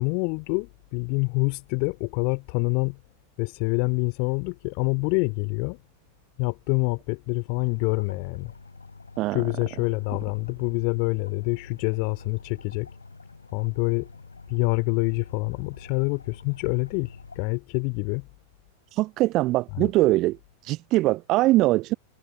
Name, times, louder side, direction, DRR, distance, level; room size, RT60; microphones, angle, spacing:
voice 1, 0.0-3.0 3.4-5.8 6.4-8.5 9.3-12.9 13.5-14.1 14.5-18.3 19.7-19.9, left 40 dB or more, 45° left, 3.3 m, -26 dB
sound 1, 7.5-17.5, left 4 dB, 80° left, 7.0 m, -47 dB
voice 2, 19.0-20.4 20.6-21.9, right 18 dB, 40° right, 0.8 m, -22 dB
figure-of-eight pair, 90°, 0 cm